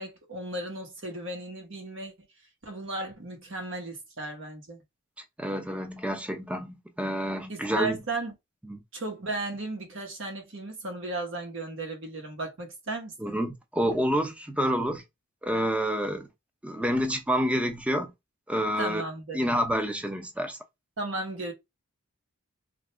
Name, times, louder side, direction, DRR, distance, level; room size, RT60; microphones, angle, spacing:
voice 1, 0.0-2.1 2.6-4.8 7.5-8.3 8.9-13.4 18.8-19.4 21.0-21.5, right 2 dB, 65° right, 1.1 m, -35 dB
voice 2, 5.4-8.0 8.7-8.8 13.2-15.0 15.4-16.3 16.6-18.1 18.5-19.0 19.3-20.6, equal, 5° right, 0.5 m, -28 dB
2.8 x 2.5 x 3.2 m
head